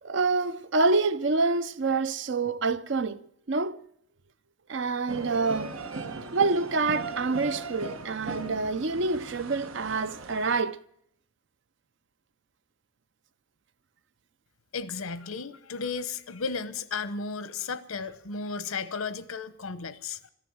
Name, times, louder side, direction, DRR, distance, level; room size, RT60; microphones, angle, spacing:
voice 1, 0.0-3.2 3.5-3.8 4.7-5.8 6.3-10.8, right 3 dB, 60° right, 0.6 m, -27 dB
sound 1, 5.1-10.6, right 3 dB, 85° right, 1.3 m, -38 dB
voice 2, 14.7-20.2, left 5 dB, 90° left, 0.9 m, -34 dB
14.0 x 11.0 x 7.7 m
head